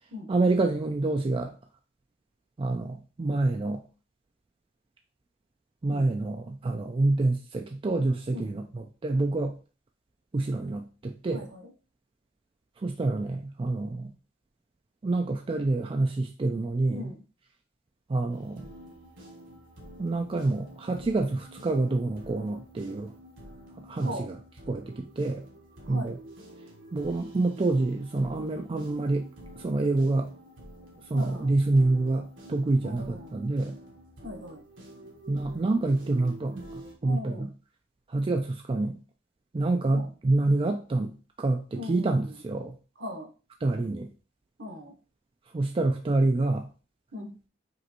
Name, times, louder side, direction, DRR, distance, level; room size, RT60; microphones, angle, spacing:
voice 1, 0.3-1.5 2.6-3.8 5.8-9.6 10.3-11.4 12.8-14.1 15.0-17.0 18.1-18.6 20.0-23.1 23.9-24.1 24.7-25.4 25.9-26.1 26.9-29.3 29.6-30.3 31.1-33.7 35.3-36.6 37.0-37.2 38.1-38.9 39.5-41.1 41.4-42.7 43.6-44.1 45.5-46.7, right 2 dB, 30° right, 3 dB, 0.4 m, -27 dB
voice 2, 8.3-8.7 11.3-11.7 16.9-17.2 24.0-24.3 25.9-26.1 31.1-31.5 32.8-33.4 34.2-34.6 37.0-37.5 39.9-40.1 41.7-42.4 43.0-43.3 44.6-44.9 47.1-47.4, left 1 dB, 65° right, 3 dB, 1.2 m, -39 dB
sound 1, 18.3-36.9, right 1 dB, 85° right, 1.4 m, -48 dB
5.2 x 3.1 x 3.0 m, 0.34 s
head